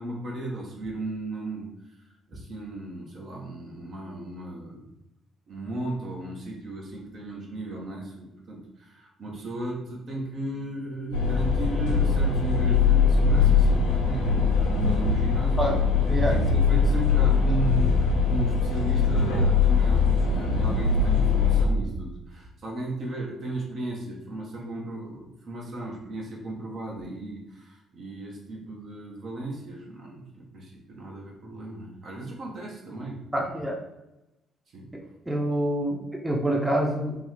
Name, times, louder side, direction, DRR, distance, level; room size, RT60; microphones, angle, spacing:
voice 1, 0.0-1.7 2.3-4.8 5.5-33.5 34.7-34.9, right 2 dB, 55° right, -1 dB, 1.0 m, -35 dB
sound 1, 11.1-21.7, left 5 dB, 90° left, 0.7 m, -22 dB
voice 2, 33.3-33.8 35.3-37.2, right 1 dB, 10° right, 0 dB, 0.7 m, -26 dB
3.7 x 2.3 x 3.2 m, 0.93 s
hypercardioid pair, 50°, 0 cm